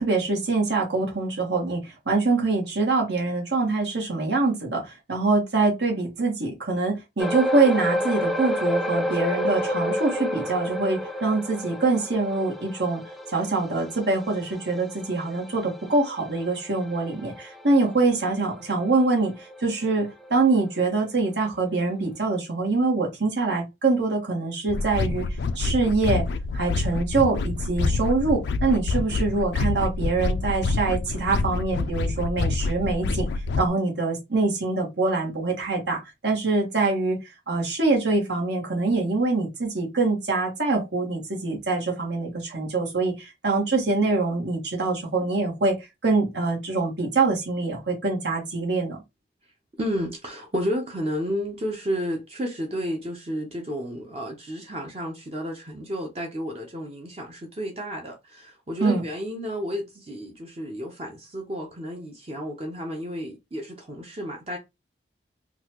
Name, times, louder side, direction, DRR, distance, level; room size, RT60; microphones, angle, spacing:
voice 1, 0.0-13.0 13.3-25.3 25.5-26.2 26.5-33.3 33.6-37.2 37.5-45.8 46.0-49.0 58.8-59.0, right 3 dB, 75° right, 1.4 m, -24 dB
sound 1, 7.2-19.9 20.2-20.4 21.0-21.1, left 1 dB, ahead, 0.3 m, -31 dB
sound 2, 24.7-33.7, left 3 dB, 75° left, 0.4 m, -27 dB
voice 2, 49.8-64.6, equal, 35° right, 0.7 m, -31 dB
3.8 x 2.3 x 3.0 m
head